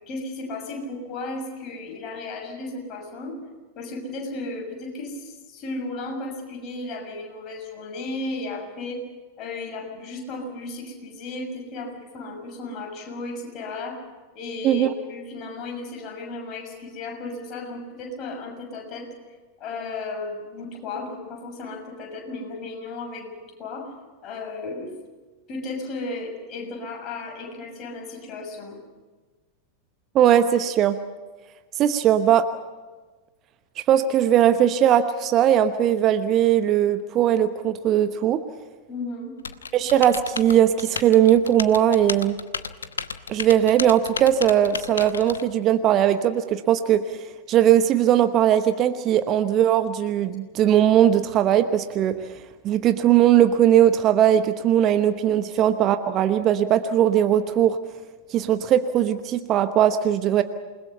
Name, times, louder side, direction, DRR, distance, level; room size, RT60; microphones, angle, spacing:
voice 1, 0.0-3.4 3.7-9.0 9.4-14.0 14.3-19.1 19.6-23.9 24.2-24.9 25.5-28.8 38.9-39.3, left 2 dB, 35° left, 2 dB, 6.6 m, -34 dB
voice 2, 30.1-31.0 31.8-32.5 33.9-38.4 39.7-42.4 43.3-47.0 47.5-52.2 52.6-57.8 58.3-60.4, right 10 dB, 35° right, 10 dB, 1.0 m, -19 dB
Typing, 39.4-45.4, left 6 dB, 70° left, 0.9 m, -33 dB
28.5 x 20.5 x 5.6 m, 1.3 s
figure-of-eight pair, 90°, 0 cm